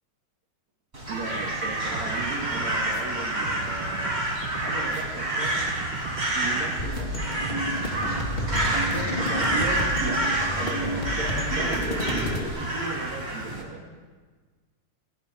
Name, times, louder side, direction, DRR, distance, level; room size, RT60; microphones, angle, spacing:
Crow, 0.9-13.6, right 1 dB, 20° right, 4.8 m, -28 dB
voice 1, 1.1-4.2 4.6-5.7 6.3-7.5 8.9-10.2 10.6-13.8, right 3 dB, 60° right, -2 dB, 3.4 m, -36 dB
sound 1, 1.9-9.9, right 7 dB, 75° right, 2.8 m, -40 dB
sound 2, 6.8-12.4, left 1 dB, 20° left, 1.8 m, -30 dB
28.5 x 20.0 x 4.5 m, 1.5 s
omnidirectional pair, 3.7 m